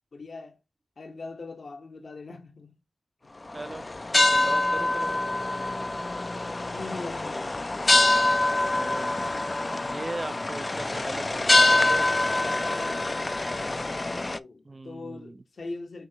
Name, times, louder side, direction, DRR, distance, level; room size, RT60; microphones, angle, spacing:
voice 1, 0.1-0.6 1.0-2.7 6.7-7.7 13.9-16.1, left 3 dB, 75° left, 1.0 m, -41 dB
sound 1, 3.5-14.4, left 2 dB, 40° left, 0.3 m, -25 dB
voice 2, 3.5-3.9 4.1-5.2 8.6-9.1 9.8-12.0 14.6-15.4, right 2 dB, 40° right, 0.4 m, -38 dB
6.2 x 3.0 x 2.8 m
cardioid pair, 50°, 0 cm